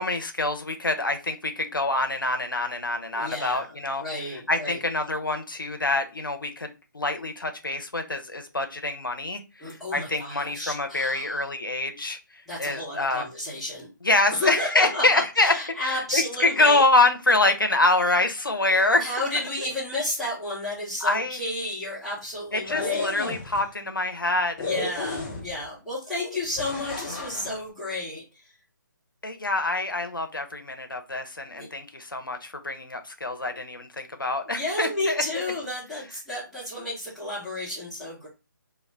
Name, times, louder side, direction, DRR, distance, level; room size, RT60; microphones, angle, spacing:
voice 1, 0.0-4.0 4.5-13.3 14.0-15.5 15.8-19.0 21.0-21.4 22.5-24.7 29.2-35.2, left 2 dB, 90° left, 6 dB, 0.5 m, -25 dB
voice 2, 3.1-4.8 9.6-11.5 12.5-13.9 14.3-16.8 18.9-23.4 24.6-28.6 31.5-31.7 33.5-33.6 34.5-38.3, left 1 dB, ahead, -9 dB, 1.0 m, -32 dB
sound 1, 22.6-23.6 24.6-25.7 26.6-27.5, left 3 dB, 15° left, 0.4 m, -32 dB
2.2 x 2.1 x 3.3 m, 0.29 s
figure-of-eight pair, 145°, 11 cm